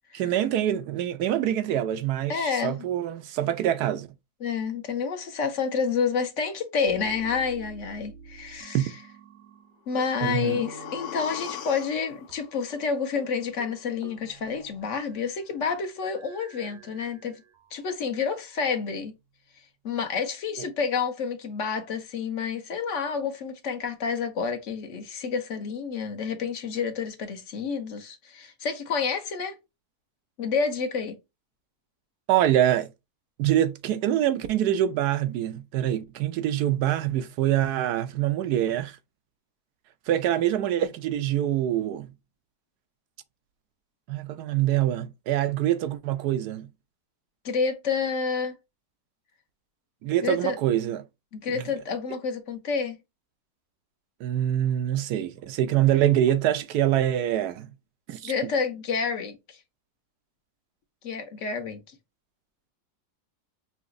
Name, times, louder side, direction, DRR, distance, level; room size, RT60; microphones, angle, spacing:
voice 1, 0.1-4.1 8.7-8.9 10.2-10.6 32.3-32.9 33.4-39.0 40.1-42.1 44.1-46.7 50.0-51.0 51.5-51.6 54.2-57.7 58.1-58.5, right 12 dB, 85° right, 1.2 m, -25 dB
voice 2, 2.3-2.8 4.4-8.9 9.9-17.4 17.7-19.1 19.8-29.6 30.4-31.2 47.4-48.5 50.2-50.6 51.3-53.0 58.2-59.6 61.0-61.8, left 5 dB, 55° left, 1.1 m, -29 dB
sound 1, 6.9-9.8 10.2-12.0 12.3-12.4 12.7-12.9 13.2-13.3 13.6-15.3 16.1-17.7 18.4-19.3, right 6 dB, 55° right, 0.8 m, -46 dB
sound 2, 9.9-13.9 14.2-14.3, left 10 dB, 85° left, 1.3 m, -41 dB
5.9 x 2.8 x 2.5 m
omnidirectional pair, 1.6 m